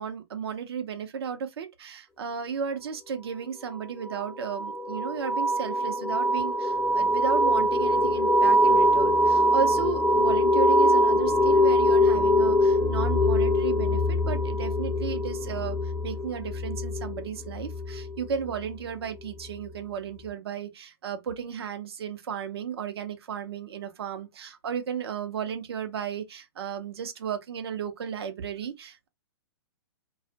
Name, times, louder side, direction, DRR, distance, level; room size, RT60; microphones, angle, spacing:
voice 1, 0.0-29.1, right 7 dB, 70° right, 0.8 m, -34 dB
sound 1, 4.1-18.5, left 1 dB, 5° left, 0.5 m, -23 dB
2.4 x 2.1 x 2.7 m
hypercardioid pair, 140°, 14 cm